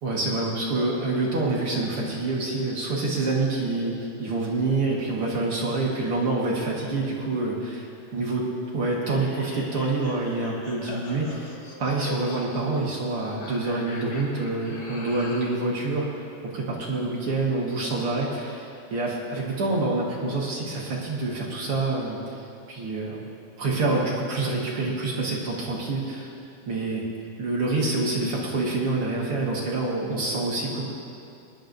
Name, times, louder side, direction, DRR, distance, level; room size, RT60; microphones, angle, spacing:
voice 1, 0.0-8.4 8.7-11.5 11.8-23.2 23.6-26.3 26.7-27.0 27.4-30.9, right 2 dB, 55° right, -4 dB, 1.5 m, -27 dB
sound 1, 9.0-15.6, left 2 dB, 55° left, 1.6 m, -40 dB
24.0 x 10.0 x 2.6 m, 2.6 s
omnidirectional pair, 4.4 m